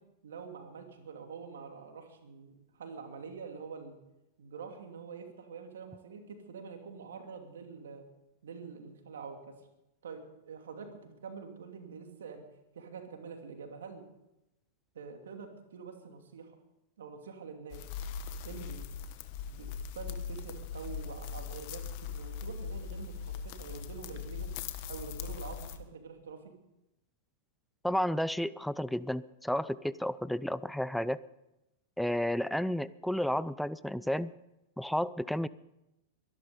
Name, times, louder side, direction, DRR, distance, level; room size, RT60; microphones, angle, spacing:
voice 1, 0.2-4.0 4.4-8.1 8.4-9.5 10.0-12.4 12.7-14.0 14.9-16.5 17.0-17.8 18.4-18.9 19.5-24.6 24.9-26.5, right 5 dB, 80° right, 5 dB, 2.6 m, -46 dB
sound 1, 17.7-25.8, left 7 dB, 55° left, 1.4 m, -40 dB
voice 2, 27.8-31.2 32.0-34.3 34.8-35.5, equal, ahead, 17 dB, 0.5 m, -32 dB
23.0 x 11.5 x 5.3 m, 0.92 s
hypercardioid pair, 110°, 0 cm